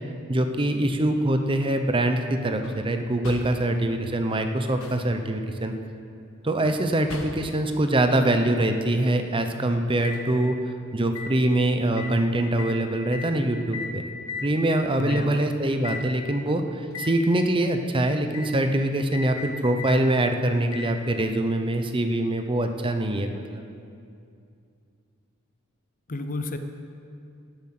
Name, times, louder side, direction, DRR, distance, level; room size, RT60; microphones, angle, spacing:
voice 1, 0.3-5.7 6.4-10.6 10.9-14.0 14.4-23.6, right 1 dB, 25° right, 6 dB, 0.7 m, -24 dB
sound 1, 2.6-2.9 3.2-3.7 4.6-5.1 6.6-7.6 10.0-10.2 11.2-11.3 12.0-12.2 12.6-12.8 13.1-13.3 13.7-14.0 14.3-14.5 15.3-15.4 15.8-16.1 16.9-17.2 18.3-18.5 19.1-20.0 20.7-20.9 21.7-21.8, left 4 dB, 80° left, 1.4 m, -37 dB
voice 2, 15.0-15.5 26.1-26.6, left 2 dB, 40° left, 8 dB, 0.6 m, -31 dB
18.0 x 7.3 x 6.0 m, 2.5 s
head